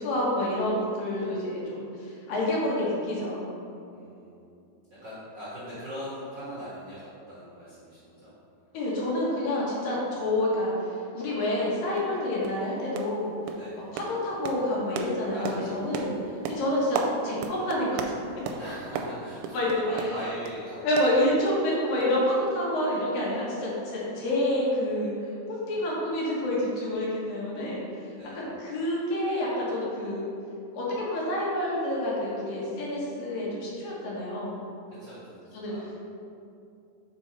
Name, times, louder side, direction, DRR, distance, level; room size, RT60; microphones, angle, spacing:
voice 1, 0.0-3.5 8.7-10.7 11.1-13.3 13.9-16.1 16.5-17.0 17.2-18.0 19.5-19.8 20.8-25.1 25.5-27.8 28.3-30.3 30.7-34.6 35.5-35.7, left 1 dB, 75° left, -5 dB, 3.0 m, -28 dB
voice 2, 3.9-4.5 4.9-8.3 13.5-13.8 15.3-16.1 18.5-20.9 28.2-28.4 35.0-35.4 35.6-35.9, equal, 50° right, -11 dB, 1.4 m, -41 dB
sound 1, 11.5-11.6 12.0-12.1 12.4-12.7 13.0-13.2 13.5-20.6 21.0-21.7 22.0-22.1 22.5-22.6, right 4 dB, 85° right, 2.3 m, -36 dB
6.9 x 4.1 x 4.6 m, 2.6 s
omnidirectional pair, 4.1 m